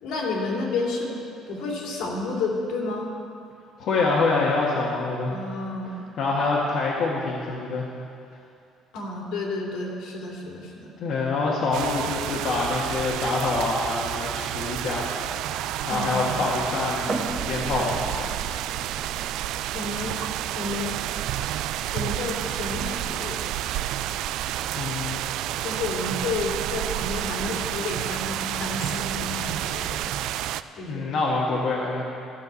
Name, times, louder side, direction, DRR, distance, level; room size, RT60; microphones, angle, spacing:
voice 1, 0.0-1.2 1.5-3.1 5.3-6.1 8.9-10.9 15.9-16.3 19.7-20.2 20.5-21.0 21.9-23.4 25.6-30.1 30.7-31.1, left 3 dB, 75° left, -2 dB, 2.6 m, -31 dB
voice 2, 3.8-5.4 6.2-7.9 11.0-15.1 15.5-15.6 15.8-18.3 24.7-25.3 30.9-32.0, left 3 dB, 55° left, -5 dB, 1.5 m, -26 dB
sound 1, 11.7-30.6, right 12 dB, 75° right, 0.3 m, -30 dB
sound 2, 17.1-30.6, right 2 dB, 25° right, 0.9 m, -42 dB
14.0 x 5.9 x 8.2 m, 2.5 s
cardioid pair, 150°, 0 cm